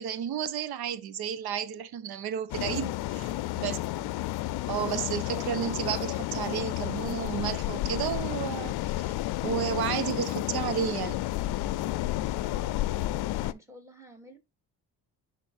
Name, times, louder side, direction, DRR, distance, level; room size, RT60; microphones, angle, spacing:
voice 1, 0.0-2.9 3.5-3.8 4.7-8.7 9.4-11.3, right 9 dB, 70° right, 1.0 m, -32 dB
sound 1, 2.5-13.5, left 16 dB, 70° left, 0.6 m, -31 dB
voice 2, 3.1-3.9 12.0-12.8 13.1-14.4, right 1 dB, 5° right, 3.0 m, -53 dB
11.5 x 4.1 x 2.5 m
cardioid pair, 75°, 40 cm